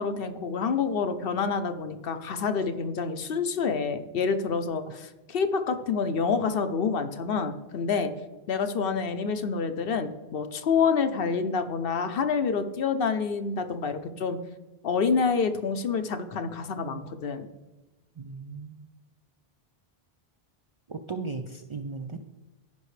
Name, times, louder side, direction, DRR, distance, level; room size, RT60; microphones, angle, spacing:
voice 1, 0.0-8.1 8.5-14.4 14.8-17.5, left 5 dB, 65° left, 9 dB, 0.9 m, -27 dB
voice 2, 18.2-18.8 20.9-22.2, right 4 dB, 45° right, 4 dB, 0.4 m, -37 dB
15.0 x 5.4 x 3.2 m, 1.1 s
omnidirectional pair, 1.0 m